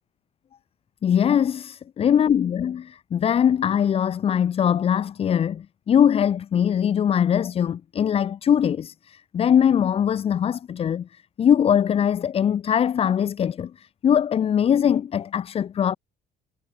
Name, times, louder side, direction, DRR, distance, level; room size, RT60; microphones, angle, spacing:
voice 1, 1.0-15.9, left 8 dB, 35° left, 0.5 m, -21 dB
cardioid pair, 110°, 17 cm